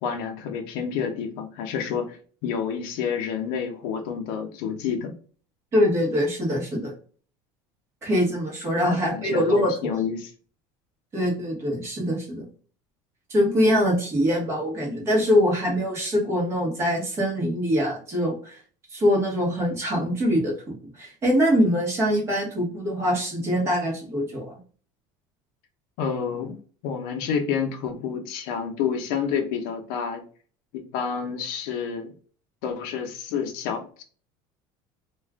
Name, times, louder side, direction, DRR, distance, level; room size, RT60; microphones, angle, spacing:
voice 1, 0.0-5.1 8.7-10.3 26.0-30.2 30.7-32.1 32.6-34.0, left 7 dB, 70° left, 4 dB, 0.6 m, -29 dB
voice 2, 5.7-6.9 8.0-9.7 11.1-12.5 13.3-18.6 18.9-24.5, equal, 25° right, -2 dB, 1.1 m, -23 dB
2.4 x 2.3 x 3.4 m, 0.42 s
cardioid pair, 165°, 11 cm